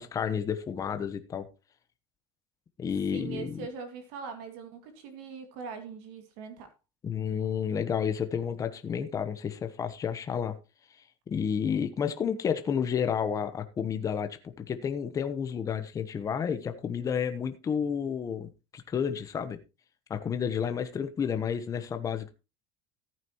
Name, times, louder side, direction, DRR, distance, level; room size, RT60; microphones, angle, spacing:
voice 1, 0.0-1.5 2.8-3.6 7.0-10.5 11.3-19.6 20.1-22.3, left 7 dB, 20° left, 9 dB, 0.9 m, -31 dB
voice 2, 3.1-6.7, right 5 dB, 65° right, 7 dB, 2.2 m, -41 dB
14.5 x 9.1 x 3.0 m, 0.28 s
cardioid pair, 155°, 16 cm